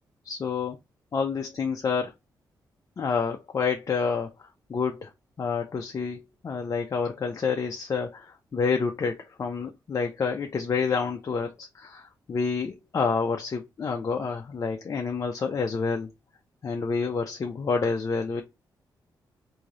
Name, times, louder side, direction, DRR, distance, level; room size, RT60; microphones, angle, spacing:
voice 1, 0.2-0.8 1.1-2.1 3.0-5.1 5.4-16.1 16.6-18.4, left 5 dB, 45° left, 0.6 m, -28 dB
3.1 x 2.8 x 3.7 m
cardioid pair, 95°, 8 cm